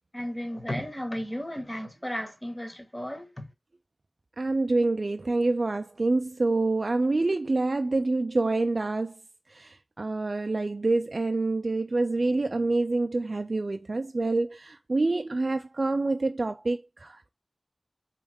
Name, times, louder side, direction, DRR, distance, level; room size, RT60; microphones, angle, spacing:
voice 1, 0.1-3.4, equal, 15° left, 1.4 m, -34 dB
voice 2, 4.4-9.2 9.5-17.3, right 2 dB, 65° right, 0.3 m, -27 dB
3.4 x 3.2 x 4.8 m
wide cardioid pair, 45°, 0 cm